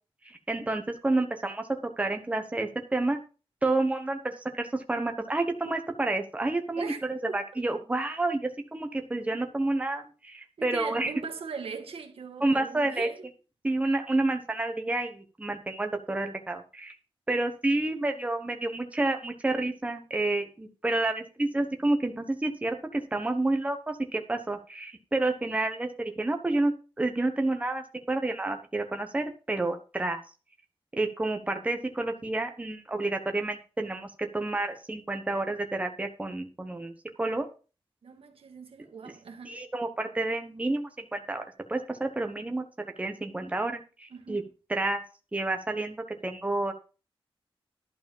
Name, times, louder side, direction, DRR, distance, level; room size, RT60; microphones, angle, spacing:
voice 1, 0.2-1.7 2.0-3.2 3.6-11.1 12.4-13.1 13.6-16.9 17.3-30.2 30.9-36.9 37.2-37.5 39.4-42.6 43.0-44.4 44.7-45.0 45.3-46.0 46.2-46.7, right 2 dB, 15° right, 1.1 m, -29 dB
voice 2, 7.3-7.6 10.6-13.3 38.0-39.6 44.1-44.4, right 5 dB, 75° right, 1.8 m, -40 dB
11.5 x 4.8 x 7.2 m
wide cardioid pair, 170°, 10 cm